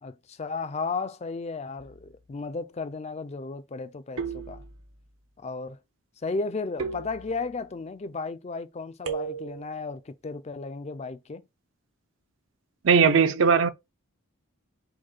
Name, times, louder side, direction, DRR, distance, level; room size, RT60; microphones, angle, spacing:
voice 1, 0.0-4.6 5.4-5.8 6.2-11.4, left 4 dB, 30° left, 0.3 m, -34 dB
sound 1, 1.8-2.3 4.2-5.1 6.8-7.7 9.0-9.8, right 5 dB, 75° right, 0.9 m, -36 dB
voice 2, 12.8-13.7, right 6 dB, 60° right, 0.5 m, -19 dB
4.8 x 2.2 x 4.3 m
head